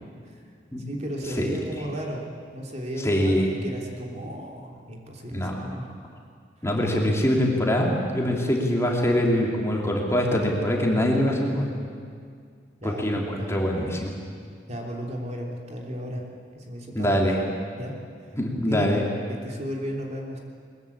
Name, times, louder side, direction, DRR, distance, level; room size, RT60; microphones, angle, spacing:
voice 1, 0.8-2.3 2.5-5.9 12.8-13.5 14.7-16.2 16.5-17.2 17.7-18.0 18.7-19.0 19.3-20.4, equal, 40° right, 0 dB, 3.3 m, -34 dB
voice 2, 3.0-3.5 5.3-5.6 6.6-11.6 12.8-14.1 16.9-17.4 18.4-19.0, equal, 15° left, 0 dB, 3.0 m, -23 dB
21.5 x 21.5 x 8.6 m, 2.2 s
head